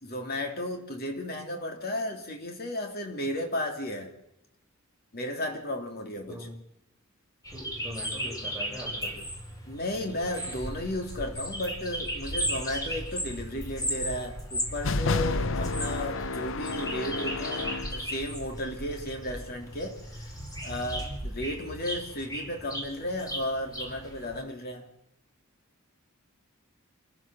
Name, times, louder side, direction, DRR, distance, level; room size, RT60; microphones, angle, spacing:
voice 1, 0.0-4.1 5.1-6.5 9.7-20.3 20.6-24.9, left 1 dB, 45° left, 3.1 m, -34 dB
sound 1, 7.4-24.4, equal, 15° left, 4.3 m, -36 dB
voice 2, 7.5-9.2, equal, ahead, 5.9 m, -41 dB
sound 2, 14.8-18.0, left 3 dB, 65° left, 0.7 m, -30 dB
27.5 x 15.0 x 6.3 m
head